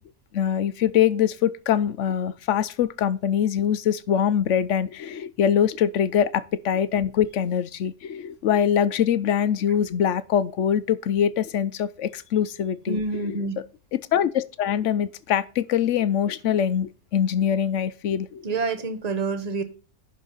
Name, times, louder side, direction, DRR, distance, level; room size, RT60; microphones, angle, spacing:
voice 1, 0.3-13.4 14.1-18.4, left 9 dB, 65° left, 0.8 m, -23 dB
voice 2, 12.9-13.5 18.4-19.6, right 3 dB, 30° right, 1.0 m, -27 dB
10.5 x 5.5 x 3.9 m
omnidirectional pair, 1.7 m